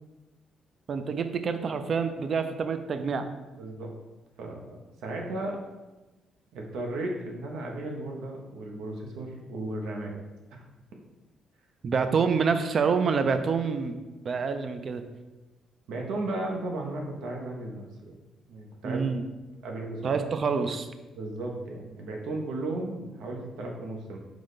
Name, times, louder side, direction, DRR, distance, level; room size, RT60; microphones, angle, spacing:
voice 1, 0.9-3.3 11.8-15.0 18.8-19.2 20.0-20.9, right 5 dB, 50° right, 9 dB, 0.4 m, -27 dB
voice 2, 3.6-3.9 4.4-5.6 6.5-10.2 10.5-10.6 11.8-11.9 15.9-18.1 18.5-19.0 19.6-20.2 21.2-24.2, right 2 dB, 85° right, 1 dB, 0.7 m, -35 dB
4.8 x 2.1 x 4.0 m, 1.1 s
cardioid pair, 90°, 0 cm